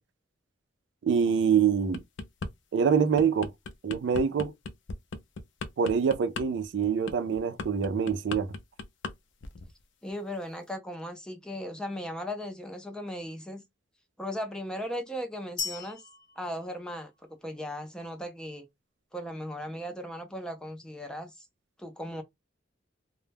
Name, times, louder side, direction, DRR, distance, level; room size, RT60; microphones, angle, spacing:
voice 1, 1.0-2.0 2.7-3.5 3.8-4.5 5.8-8.5, right 6 dB, 75° right, 0.4 m, -25 dB
sound 1, 1.7-2.5 2.9-9.1 9.4-9.7, left 3 dB, 80° left, 0.4 m, -38 dB
voice 2, 10.0-13.6 14.2-16.0 16.4-17.1 17.4-18.7 19.1-21.5 21.8-22.2, equal, 5° left, 0.4 m, -37 dB
sound 2, 15.6-17.5, left 6 dB, 45° left, 0.8 m, -39 dB
2.1 x 2.0 x 3.3 m
head